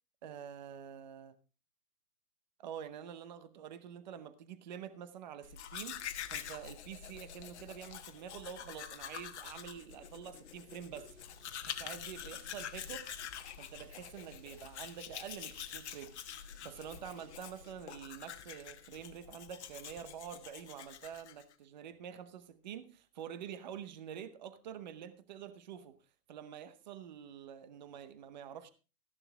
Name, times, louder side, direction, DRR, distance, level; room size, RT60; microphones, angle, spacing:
voice 1, 0.2-1.4 2.6-6.0 6.3-11.1 11.6-13.2 13.6-16.2 16.6-26.0 26.3-28.7, right 9 dB, 30° right, 0.8 m, -47 dB
Domestic sounds home sounds, 5.4-21.5, left 9 dB, 45° left, 1.3 m, -46 dB
sound 1, 10.9-17.7, right 4 dB, 65° right, 2.3 m, -64 dB
14.0 x 11.0 x 3.4 m
hypercardioid pair, 160°, 47 cm